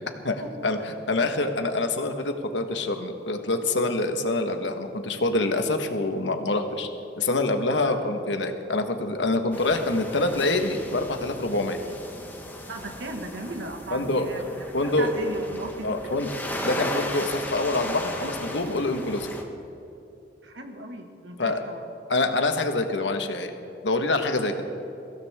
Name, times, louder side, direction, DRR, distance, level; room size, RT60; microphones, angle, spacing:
voice 1, 0.2-6.9 7.2-11.8 13.9-14.3 14.7-15.1 15.8-16.3 16.6-19.3 21.4-21.6 22.1-23.5 23.8-24.6, left 2 dB, 85° left, 6 dB, 1.4 m, -26 dB
sound 1, 9.5-19.4, left 1 dB, 10° left, 1.5 m, -36 dB
voice 2, 12.7-16.2 20.4-21.8, right 2 dB, 80° right, 4 dB, 1.9 m, -37 dB
22.5 x 16.0 x 3.6 m, 2.8 s
head